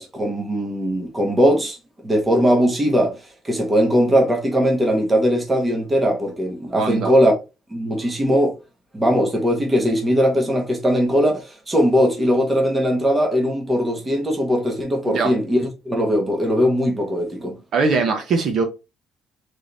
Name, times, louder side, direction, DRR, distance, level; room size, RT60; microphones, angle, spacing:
voice 1, 0.0-1.8 2.0-7.3 7.7-8.6 8.9-17.6, equal, 10° right, 1.1 m, -20 dB
voice 2, 6.7-7.1 15.1-15.3 17.7-18.6, right 4 dB, 45° right, 0.9 m, -21 dB
3.7 x 3.4 x 4.0 m
cardioid pair, 175°, 0 cm